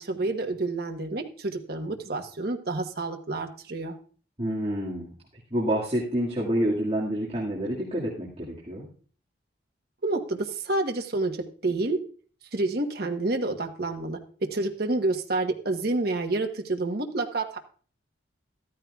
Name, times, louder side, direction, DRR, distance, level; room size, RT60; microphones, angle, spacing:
voice 1, 0.0-3.9 10.0-11.4 11.6-12.0 12.5-17.6, right 2 dB, 55° right, 4 dB, 1.1 m, -29 dB
voice 2, 4.4-5.1 5.5-8.9, right 1 dB, 30° right, -5 dB, 2.0 m, -28 dB
14.0 x 13.0 x 2.4 m, 0.41 s
head